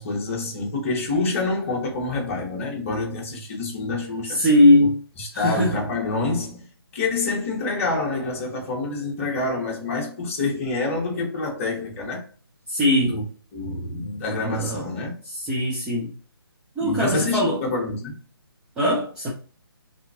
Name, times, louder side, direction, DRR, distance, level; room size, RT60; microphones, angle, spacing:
voice 1, 0.0-4.4 4.8-4.9 5.2-6.7 6.9-12.2 13.1-13.2 13.5-15.1 16.8-18.1, left 3 dB, 30° left, 1.1 m, -27 dB
voice 2, 4.2-5.0 5.3-5.8 12.7-13.2 14.4-14.9 15.3-16.1 16.8-17.6 18.8-19.3, left 1 dB, 5° right, 0.3 m, -20 dB
3.4 x 2.8 x 2.6 m
figure-of-eight pair, 145°, 13 cm